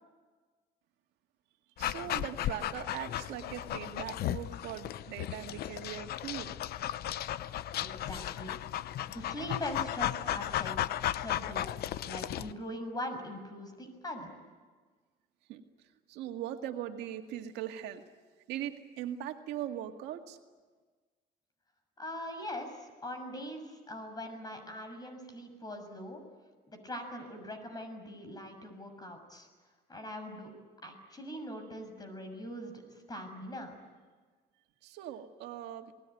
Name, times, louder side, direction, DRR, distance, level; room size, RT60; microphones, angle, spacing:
Dog, 1.8-12.5, left 12 dB, 65° left, 0.8 m, -35 dB
voice 1, 1.8-6.7 15.5-18.0 18.5-20.4 34.8-35.9, right 11 dB, 85° right, 4 dB, 2.2 m, -40 dB
voice 2, 7.8-8.6 9.1-10.7 11.1-11.7 12.0-14.3 22.0-26.2 26.7-29.5 29.9-30.5 30.8-33.8, left 1 dB, 25° left, 7 dB, 6.7 m, -42 dB
28.5 x 20.0 x 9.4 m, 1.4 s
cardioid pair, 110°, 17 cm